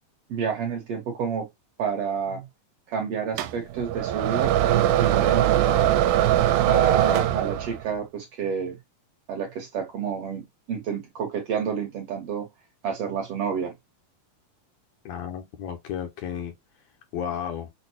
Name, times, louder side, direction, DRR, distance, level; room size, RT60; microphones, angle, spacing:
voice 1, 0.3-1.5 1.8-2.5 2.9-6.0 6.7-8.8 9.3-10.4 10.7-12.5 12.8-13.7, right 7 dB, 65° right, 1.7 m, -29 dB
sound 1, 3.4-7.9, right 12 dB, 80° right, 2.0 m, -21 dB
voice 2, 15.1-16.5 17.1-17.7, left 8 dB, 75° left, 1.8 m, -33 dB
6.1 x 2.2 x 2.8 m
omnidirectional pair, 3.6 m